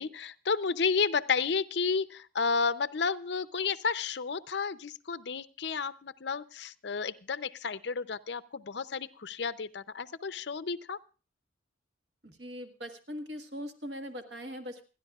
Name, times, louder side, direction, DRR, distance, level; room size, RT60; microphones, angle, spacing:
voice 1, 0.0-11.0, left 5 dB, 60° left, 13 dB, 0.6 m, -32 dB
voice 2, 12.2-14.8, equal, 60° right, 6 dB, 1.6 m, -41 dB
28.5 x 10.5 x 2.4 m, 0.35 s
head